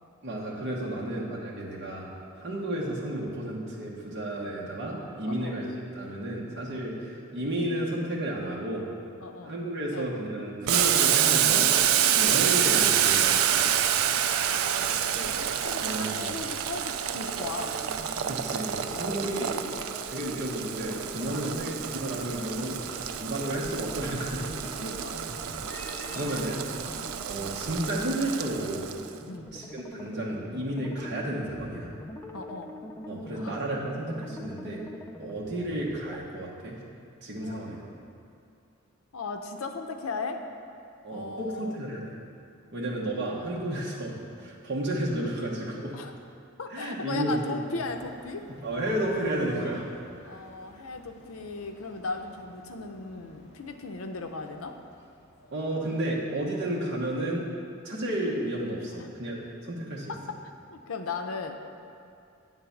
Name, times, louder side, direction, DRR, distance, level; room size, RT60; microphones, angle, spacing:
voice 1, 0.2-2.1 2.4-5.7 5.9-8.8 9.4-11.7 12.1-13.6 15.8-16.3 18.3-19.5 20.1-24.5 25.7-26.6 27.2-28.8 29.5-31.9 33.1-34.8 35.2-36.8 37.2-37.8 41.0-42.1 42.7-45.9 46.7-47.6 48.6-49.8 55.5-57.5 57.8-60.1, right 1 dB, 55° right, -4 dB, 1.1 m, -32 dB
voice 2, 5.3-5.6 9.2-9.5 9.9-10.1 12.1-12.5 14.5-17.8 18.9-19.9 21.3-21.6 24.8-25.2 26.0-26.6 26.8-27.1 29.3-29.5 32.3-32.7 33.4-33.6 37.4-37.9 39.1-40.4 41.1-41.8 45.9-46.1 46.6-48.4 50.2-54.8 58.9-59.1 60.1-60.2 60.7-61.6, left 4 dB, 80° left, 6 dB, 0.6 m, -38 dB
Boiling, 10.7-29.1, right 10 dB, 85° right, 0.4 m, -27 dB
sound 1, 17.2-36.2, left 1 dB, 10° left, 0.3 m, -44 dB
sound 2, 47.7-55.6, equal, 55° left, 1.3 m, -44 dB
9.0 x 3.9 x 7.0 m, 2.5 s
head